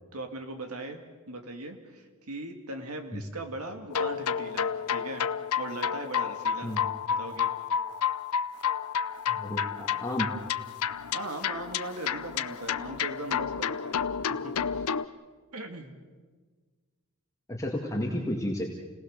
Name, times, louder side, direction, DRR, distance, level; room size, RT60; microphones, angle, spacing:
voice 1, 0.1-5.3 5.6-6.7 7.1-7.5 11.1-14.0 14.4-14.8 15.5-15.9, right 2 dB, 70° right, 5 dB, 2.3 m, -39 dB
sound 1, 3.9-15.0, left 7 dB, 70° left, 0.6 m, -30 dB
voice 2, 9.3-10.3 17.5-18.6, left 1 dB, 15° left, -1 dB, 2.0 m, -32 dB
28.5 x 18.5 x 6.7 m, 1.5 s
head